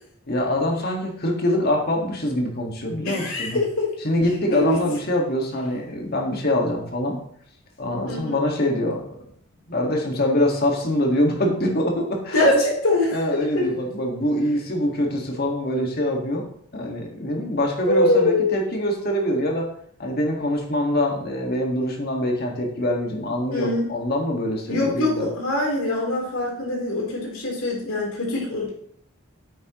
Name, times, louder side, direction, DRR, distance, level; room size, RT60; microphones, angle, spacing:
voice 1, 0.3-3.6 4.0-7.2 7.8-9.0 9.7-12.6 13.1-16.4 16.7-19.7 20.0-25.3, left 1 dB, 45° left, 1 dB, 1.8 m, -24 dB
voice 2, 3.1-3.9 4.5-4.8 8.1-8.4 12.3-13.7 17.9-18.6 23.5-23.9 24.7-28.7, left 2 dB, 80° left, -2 dB, 3.7 m, -23 dB
8.7 x 8.6 x 3.1 m, 0.64 s
head